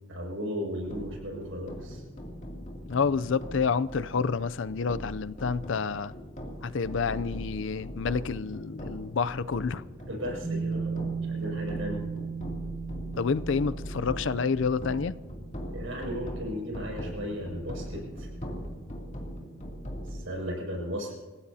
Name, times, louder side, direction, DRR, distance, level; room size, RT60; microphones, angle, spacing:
voice 1, 0.1-2.0 10.0-12.0 15.7-18.3 20.1-21.1, equal, 70° right, 6.4 m, -36 dB
sound 1, 0.8-20.3, equal, 35° left, 2.7 m, -40 dB
voice 2, 2.9-6.1 6.6-9.8 13.2-15.1, left 5 dB, 65° left, 0.5 m, -29 dB
sound 2, 10.4-19.9, right 5 dB, 35° right, 2.4 m, -38 dB
27.5 x 16.0 x 2.8 m
head